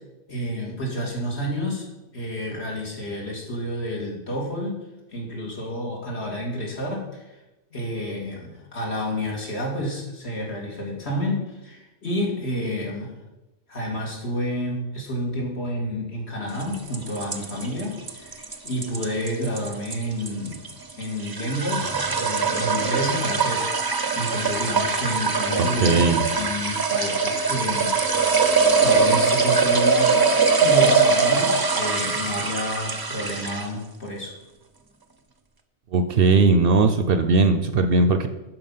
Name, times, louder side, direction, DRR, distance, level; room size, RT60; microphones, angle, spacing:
voice 1, 0.3-1.9 2.1-4.8 5.1-7.4 7.7-13.1 13.7-20.6 21.0-28.0 28.8-30.2 30.6-34.3, equal, 65° left, -2 dB, 2.4 m, -29 dB
sound 1, 16.6-33.8, right 4 dB, 25° right, 0.6 m, -22 dB
voice 2, 25.6-26.3 35.9-38.3, right 3 dB, 60° right, 9 dB, 0.8 m, -19 dB
11.5 x 4.8 x 5.6 m, 1.0 s
omnidirectional pair, 1.2 m